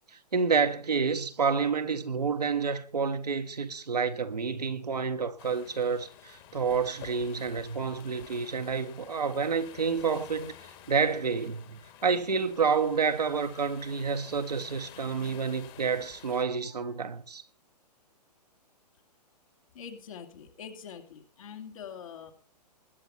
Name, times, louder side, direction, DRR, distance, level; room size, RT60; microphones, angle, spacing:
voice 1, 0.3-10.5 10.9-17.4, right 5 dB, 70° right, 1.4 m, -29 dB
sound 1, 5.4-16.4, left 10 dB, 35° left, 2.1 m, -51 dB
voice 2, 19.7-22.3, left 7 dB, 55° left, 2.5 m, -44 dB
21.0 x 8.2 x 4.3 m
figure-of-eight pair, 115°, 21 cm